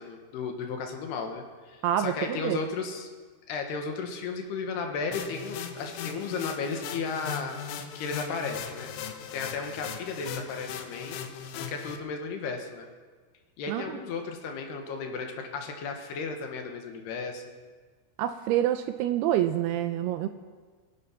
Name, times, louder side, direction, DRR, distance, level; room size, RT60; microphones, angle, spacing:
voice 1, 0.0-3.1 3.5-7.6 7.9-8.9 9.3-11.2 11.6-12.9 13.6-17.5, left 4 dB, 70° left, 3 dB, 3.4 m, -34 dB
voice 2, 1.8-2.6 13.7-13.9 18.2-20.3, right 11 dB, 80° right, 9 dB, 2.4 m, -27 dB
sound 1, 5.1-12.0, left 8 dB, 90° left, 3.4 m, -38 dB
23.5 x 10.5 x 5.9 m, 1.5 s
omnidirectional pair, 5.0 m